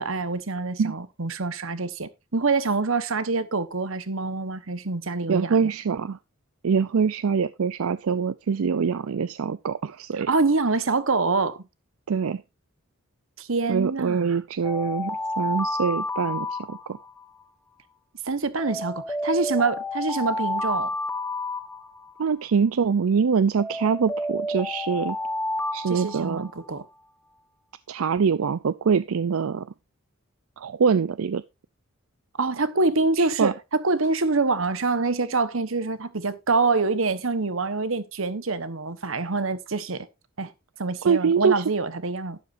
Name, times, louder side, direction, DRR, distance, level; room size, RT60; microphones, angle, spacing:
voice 1, 0.0-5.7 10.2-11.6 13.4-14.4 18.3-20.9 25.9-26.8 32.4-40.1 40.4-40.5 40.8-42.4, right 3 dB, 70° right, 1.1 m, -25 dB
voice 2, 5.3-6.2 6.6-10.3 12.1-12.4 13.7-17.0 22.2-25.2 25.7-26.5 27.9-29.7 30.6-31.4 33.2-33.5 41.0-41.6, right 6 dB, 85° right, 0.5 m, -24 dB
Alarm, 14.6-17.2 18.6-22.2 23.6-26.8, left 1 dB, 15° left, 1.5 m, -30 dB
12.0 x 11.0 x 2.6 m
head